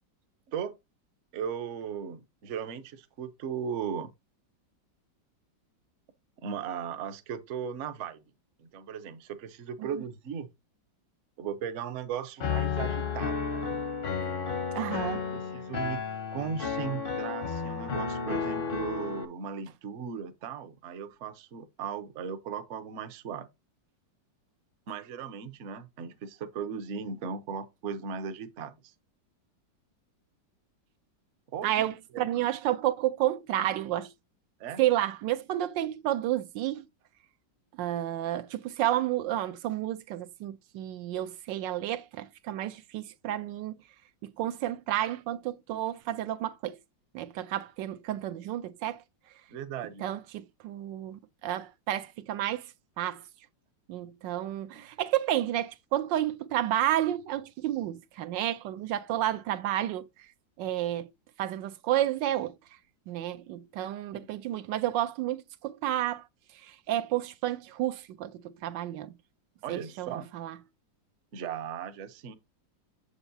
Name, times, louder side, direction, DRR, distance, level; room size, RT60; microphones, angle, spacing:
voice 1, 1.3-4.1 6.4-8.2 8.6-10.5 11.4-13.7 15.1-16.0 16.3-23.5 24.9-28.9 31.5-31.9 32.1-32.5 34.6-34.8 49.5-50.0 54.7-54.8 64.1-64.3 69.6-70.3 71.3-72.3, right 7 dB, 55° right, 0.9 m, -37 dB
Piano, 12.4-19.2, left 5 dB, 50° left, 0.7 m, -32 dB
voice 2, 14.7-15.2 31.6-34.1 34.8-36.8 37.8-43.8 44.2-46.8 47.1-49.0 50.0-52.7 53.0-53.2 53.9-60.1 60.6-61.1 61.4-62.5 63.1-66.2 66.6-69.1 69.7-70.6, right 13 dB, 80° right, 1.3 m, -31 dB
7.0 x 6.9 x 2.7 m
omnidirectional pair, 2.0 m